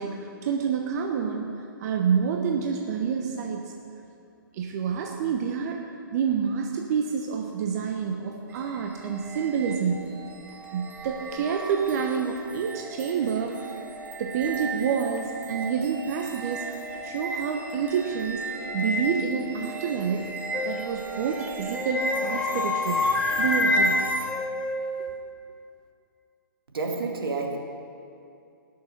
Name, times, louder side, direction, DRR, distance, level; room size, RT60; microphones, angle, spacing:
voice 1, 0.0-3.7 4.5-5.8 6.1-10.2 10.7-13.8 14.2-16.7 17.0-23.1 23.4-24.1, right 6 dB, 45° right, 2 dB, 1.0 m, -28 dB
sound 1, 8.5-24.3, right 1 dB, 15° right, 1.3 m, -34 dB
sound 2, 20.5-21.0 21.7-25.2, left 4 dB, 10° left, 0.4 m, -28 dB
voice 2, 26.7-27.6, right 3 dB, 80° right, 2 dB, 2.1 m, -29 dB
19.0 x 6.9 x 5.3 m, 2.6 s
hypercardioid pair, 135°, 12 cm